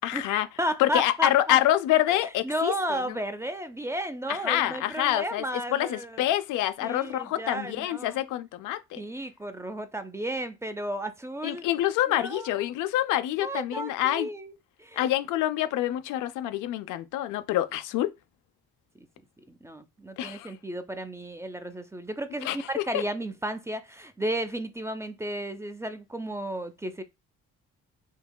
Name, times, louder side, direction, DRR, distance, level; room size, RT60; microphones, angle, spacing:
voice 1, 0.0-0.5 0.8-3.0 4.3-5.4 5.7-9.0 11.4-14.3 15.0-18.1 20.2-20.5 22.4-23.0, left 13 dB, 90° left, 0.5 m, -26 dB
voice 2, 0.6-1.6 2.1-6.3 6.8-8.2 9.0-11.6 12.1-12.5 13.4-14.5 14.8-15.1 19.0-19.1 19.5-27.0, equal, 10° right, 0.4 m, -33 dB
4.5 x 2.8 x 2.2 m
cardioid pair, 90°, 30 cm